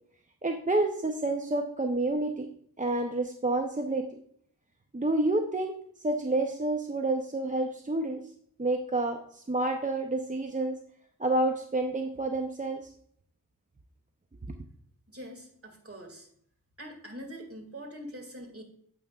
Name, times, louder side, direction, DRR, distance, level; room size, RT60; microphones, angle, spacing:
voice 1, 0.4-2.5 2.8-4.1 4.9-8.2 8.6-10.8 11.2-12.9, right 2 dB, 20° right, 4 dB, 0.6 m, -29 dB
voice 2, 15.1-16.3 16.8-18.6, equal, 35° right, 3 dB, 2.0 m, -44 dB
9.2 x 7.7 x 2.3 m, 0.66 s
wide cardioid pair, 65°, 37 cm